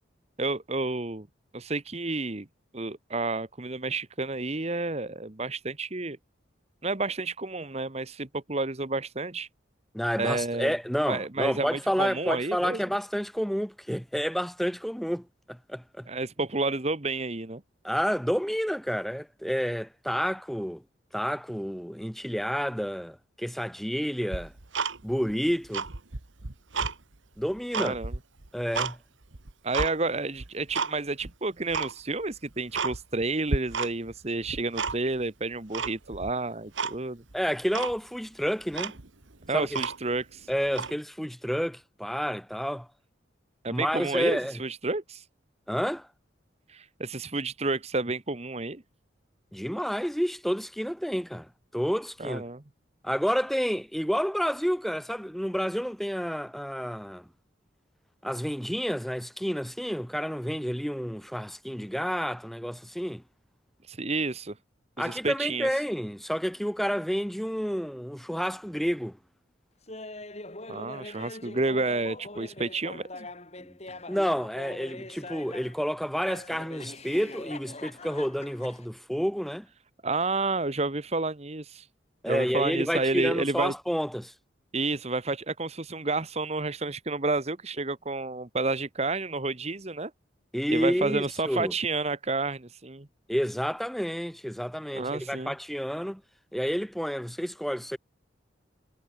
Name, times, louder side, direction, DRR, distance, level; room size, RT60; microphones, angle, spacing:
voice 1, 0.4-1.3 1.5-2.5 2.7-6.2 6.8-9.5 10.2-10.7 11.1-12.8 16.1-17.6 27.7-28.1 29.6-37.2 39.5-40.5 43.6-45.2 46.7-48.8 52.2-52.6 63.9-64.5 65.0-65.7 70.7-73.3 80.0-81.9 82.3-83.7 84.7-90.1 90.7-93.1 94.9-95.5, right 3 dB, 35° right, 1.2 m, -30 dB
voice 2, 9.9-16.1 17.8-20.8 21.1-24.5 25.0-25.9 27.4-28.0 28.5-29.0 37.3-39.0 39.5-39.8 40.5-42.9 43.7-44.6 45.7-46.1 49.5-52.4 53.0-57.3 58.2-63.2 65.0-69.2 73.6-73.7 74.1-79.7 82.2-84.3 90.5-91.7 93.3-96.2 96.5-98.0, equal, ahead, 3.7 m, -30 dB
Tick-tock, 24.3-25.3 25.6-27.0 27.4-28.9 29.3-29.9 30.4-30.9 31.2-31.3 31.7-31.9 32.3-32.4 32.7-33.2 33.5-34.2 34.4-35.2 35.7-36.3 36.8-37.0 37.3-37.4 37.7-38.0 38.4-38.5 38.7-40.2 40.7-40.9, right 4 dB, 80° right, 1.7 m, -32 dB
Laughter, 69.9-75.8 76.3-78.9, left 2 dB, 35° left, 4.2 m, -43 dB
head